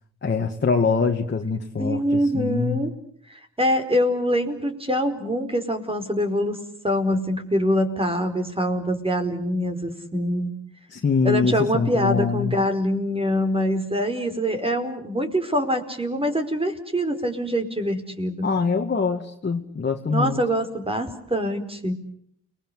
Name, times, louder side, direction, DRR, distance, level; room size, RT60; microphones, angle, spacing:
voice 1, 0.2-2.8 10.9-12.6 18.4-20.4, left 5 dB, 35° left, 2 dB, 2.3 m, -24 dB
voice 2, 1.8-2.9 3.3-6.6 6.8-10.5 11.2-18.5 20.1-21.9, equal, 20° right, 7 dB, 4.9 m, -24 dB
30.0 x 21.5 x 8.2 m, 0.66 s
cardioid pair, 65°, 29 cm